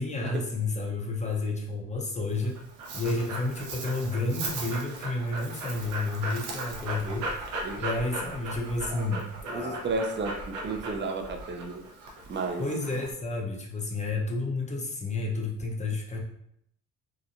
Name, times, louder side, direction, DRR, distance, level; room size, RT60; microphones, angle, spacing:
voice 1, 0.0-2.6 2.9-7.3 7.8-9.8 12.6-16.2, left 2 dB, 25° left, 0 dB, 0.6 m, -31 dB
Dog, 2.3-13.1, right 2 dB, 85° right, 0.6 m, -37 dB
voice 2, 9.5-11.8 12.3-12.6, right 3 dB, 40° right, 4 dB, 0.4 m, -33 dB
2.9 x 2.1 x 2.5 m, 0.73 s
cardioid pair, 90°, 30 cm